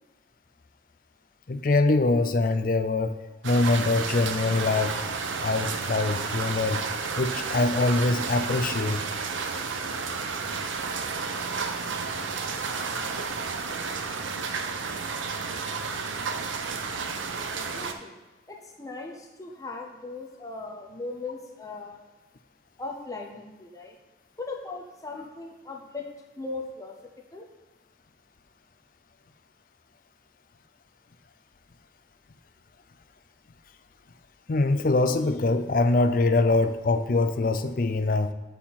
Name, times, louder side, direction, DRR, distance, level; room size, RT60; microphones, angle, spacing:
voice 1, 1.5-3.2 3.4-4.9 5.4-6.8 7.2-9.1 34.5-38.3, left 2 dB, 45° left, 9 dB, 0.5 m, -23 dB
sound 1, 3.4-17.9, right 5 dB, 90° right, 0.7 m, -31 dB
voice 2, 17.5-18.2 18.5-22.0 22.8-23.9 24.4-26.1 26.4-27.0 27.3-27.5, left 3 dB, 20° left, 1 dB, 0.8 m, -38 dB
8.1 x 4.2 x 5.8 m, 1.2 s
head